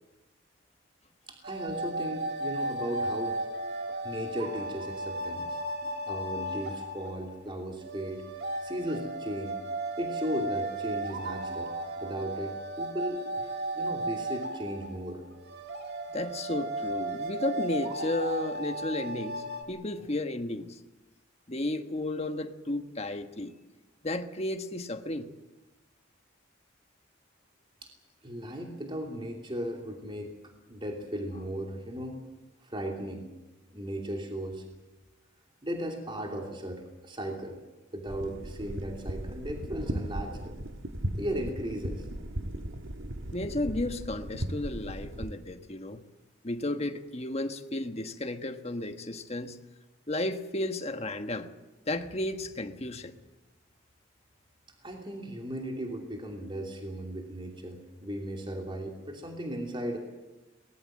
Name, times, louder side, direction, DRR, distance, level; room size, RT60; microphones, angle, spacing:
voice 1, 1.3-3.4 4.0-8.2 8.6-9.6 10.0-15.2 27.8-27.9 28.2-32.2 32.6-33.3 33.7-34.6 35.6-37.6 37.9-40.6 41.2-42.1 54.8-60.0, equal, 25° right, 2 dB, 2.9 m, -36 dB
sound 1, 1.4-19.6, right 1 dB, 55° right, 2.4 m, -35 dB
voice 2, 16.1-20.8 21.5-23.5 24.0-25.3 43.3-46.0 46.4-49.6 50.1-51.5 51.9-53.1, left 1 dB, 30° left, 7 dB, 1.4 m, -33 dB
sound 2, 38.1-45.3, right 1 dB, 70° right, 1.6 m, -37 dB
22.5 x 20.0 x 7.7 m, 1.1 s
head